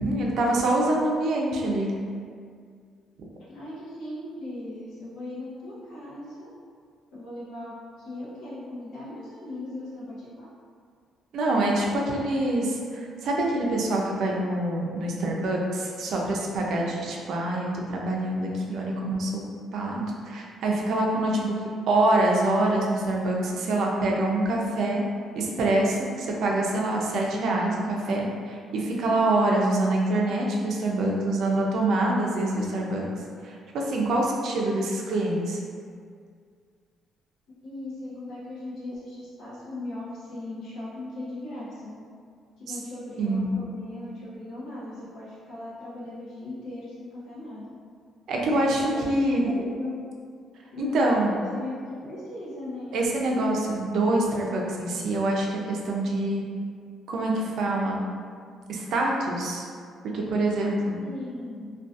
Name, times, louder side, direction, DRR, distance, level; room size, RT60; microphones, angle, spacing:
voice 1, 0.0-1.9 11.3-19.4 19.7-21.6 21.9-25.0 25.4-33.0 33.4-35.6 43.2-43.5 48.3-49.5 50.8-51.3 52.9-56.4 57.1-58.0 58.7-59.6 60.1-61.0, right 2 dB, 65° right, -1 dB, 0.4 m, -25 dB
voice 2, 3.5-6.5 7.1-10.5 37.6-42.0 42.6-47.7 48.4-49.9 50.7-51.8 52.0-53.0 61.0-61.8, left 2 dB, 70° left, -9 dB, 0.6 m, -38 dB
2.5 x 2.3 x 2.4 m, 2.1 s
cardioid pair, 145°, 0 cm